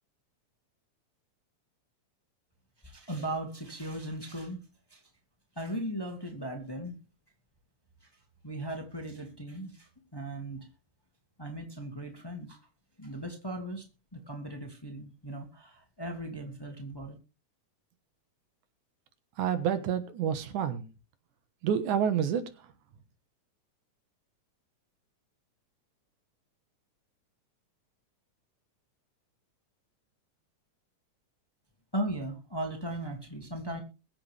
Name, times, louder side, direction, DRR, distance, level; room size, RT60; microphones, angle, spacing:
voice 1, 2.8-4.6 4.9-5.0 5.5-7.0 8.4-10.6 11.4-12.6 13.0-13.8 14.1-17.2 31.9-33.8, right 1 dB, 10° left, 4 dB, 1.6 m, -37 dB
voice 2, 19.4-20.9 21.6-22.7, right 8 dB, 90° right, 11 dB, 2.8 m, -29 dB
21.5 x 7.8 x 3.4 m, 0.32 s
omnidirectional pair, 3.4 m